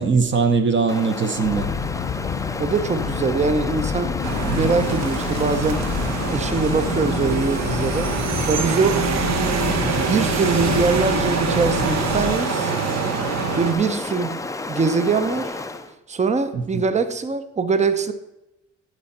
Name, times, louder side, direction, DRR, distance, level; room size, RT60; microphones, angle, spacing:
voice 1, 0.0-1.7 4.4-4.7 16.5-16.6, right 4 dB, 40° right, 0.9 m, -20 dB
Stream, 0.9-15.9, left 3 dB, 10° left, 0.5 m, -32 dB
sound 1, 1.4-12.3, left 7 dB, 50° left, 0.7 m, -29 dB
voice 2, 2.6-4.2 4.5-5.9 6.3-8.1 8.5-9.1 10.1-12.7 13.6-15.6 16.1-18.1, right 5 dB, 25° right, 0.6 m, -22 dB
sound 2, 4.2-13.7, right 6 dB, 60° right, 0.9 m, -25 dB
12.5 x 4.4 x 4.2 m
cardioid pair, 90°, 30 cm